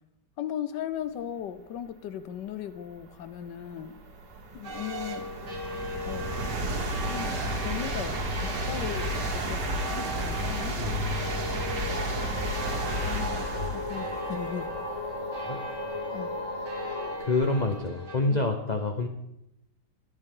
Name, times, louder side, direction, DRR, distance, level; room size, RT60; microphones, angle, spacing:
voice 1, 0.4-4.0 4.5-5.3 6.0-6.4 7.1-7.3 7.6-8.2 8.7-10.8 13.0-14.7 16.1-16.3 18.3-18.4, left 10 dB, 75° left, 12 dB, 1.3 m, -37 dB
sound 1, 2.3-2.4 3.0-17.7, right 1 dB, 60° right, 2.2 m, -33 dB
sound 2, 4.6-18.2, left 1 dB, 40° right, 2.4 m, -40 dB
voice 2, 10.8-11.5 15.4-15.6 16.9-19.1, left 2 dB, 50° left, 5 dB, 0.5 m, -28 dB
sound 3, 11.8-17.2, left 1 dB, 15° left, 1.6 m, -35 dB
20.5 x 8.0 x 3.8 m, 0.85 s
omnidirectional pair, 1.9 m